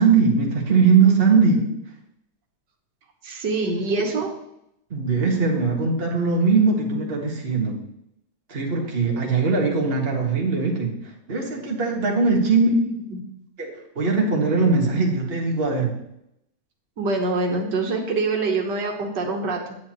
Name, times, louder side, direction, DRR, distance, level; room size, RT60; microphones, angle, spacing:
voice 1, 0.0-1.6 4.9-7.8 8.5-12.7 13.6-16.0, right 4 dB, 35° right, -1 dB, 1.8 m, -20 dB
voice 2, 3.2-4.3 6.8-7.0 12.7-13.2 17.0-19.8, right 3 dB, 85° right, 1 dB, 1.9 m, -25 dB
9.3 x 9.1 x 3.1 m, 0.79 s
omnidirectional pair, 1.8 m